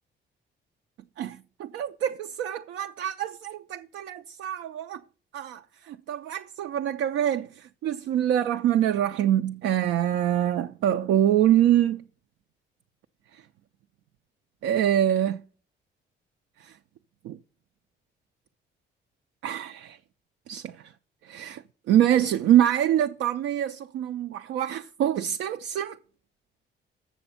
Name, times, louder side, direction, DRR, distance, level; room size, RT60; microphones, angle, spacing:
voice 1, 1.2-5.0 5.3-12.0 13.3-13.4 14.6-15.4 16.6-16.8 17.2-17.4 19.4-20.0 20.5-20.9 21.2-26.0, right 11 dB, 80° right, 0.4 m, -25 dB
7.1 x 6.9 x 5.5 m
cardioid pair, 90°, 20 cm